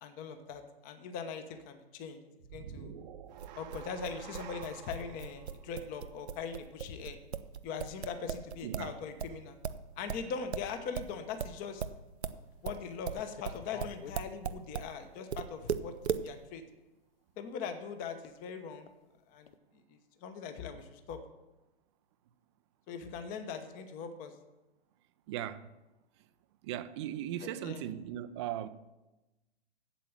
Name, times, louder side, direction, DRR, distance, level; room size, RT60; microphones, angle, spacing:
voice 1, 0.0-2.2 2.5-2.9 3.6-7.2 7.6-9.6 10.0-11.8 12.6-16.0 16.2-16.6 17.4-18.9 19.3-19.5 19.9-21.2 22.9-24.3 27.4-27.9, left 6 dB, 25° left, 1.0 m, -41 dB
sound 1, 2.4-6.8, right 8 dB, 45° right, 0.8 m, -49 dB
sound 2, 3.4-8.9 9.2-14.9 15.3-16.3, right 7 dB, 90° right, 0.7 m, -37 dB
voice 2, 8.6-8.9 25.3-25.7 26.6-28.7, right 11 dB, 30° right, 0.5 m, -38 dB
sound 3, 11.7-11.9 12.4-12.7 13.1-14.2 14.9-15.0 16.0-16.1 18.2-18.4 18.8-18.9 19.5-19.6, left 9 dB, 65° left, 0.8 m, -50 dB
8.4 x 7.7 x 7.3 m
hypercardioid pair, 125°, 32 cm